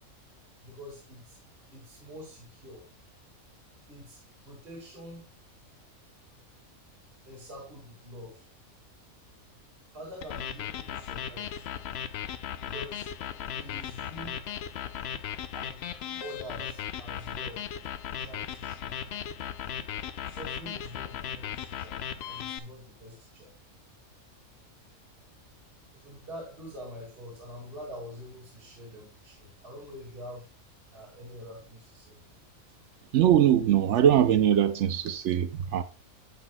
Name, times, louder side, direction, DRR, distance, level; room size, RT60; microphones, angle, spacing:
voice 1, 0.6-1.4 1.7-2.8 3.9-5.2 7.3-8.5 9.9-11.7 12.6-13.1 13.6-14.4 15.5-15.8 16.2-17.7 18.2-19.1 20.2-22.0 22.3-23.5 25.9-30.5 30.9-32.2, equal, 40° right, 2.4 m, -45 dB
sound 1, 10.2-22.6, left 9 dB, 60° left, 0.7 m, -37 dB
voice 2, 33.1-35.8, right 10 dB, 65° right, 0.8 m, -22 dB
10.5 x 7.9 x 2.3 m
omnidirectional pair, 1.5 m